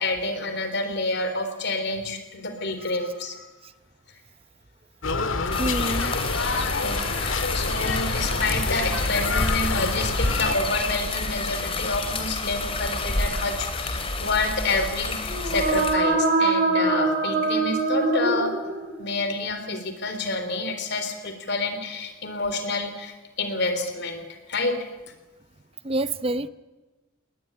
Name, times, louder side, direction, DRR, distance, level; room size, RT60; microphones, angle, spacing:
voice 1, 0.0-3.5 6.6-18.5 19.0-24.2 24.5-24.8, left 2 dB, 60° left, 7 dB, 3.8 m, -28 dB
sound 1, 5.0-10.5, left 3 dB, 75° left, 1.9 m, -27 dB
sound 2, 5.5-15.9, left 3 dB, 30° left, 2.8 m, -29 dB
voice 2, 5.6-6.1 25.8-26.5, right 1 dB, 30° right, 14 dB, 0.8 m, -27 dB
sound 3, 15.3-19.1, right 3 dB, 45° right, 4.9 m, -23 dB
20.5 x 19.0 x 10.0 m, 1.2 s
head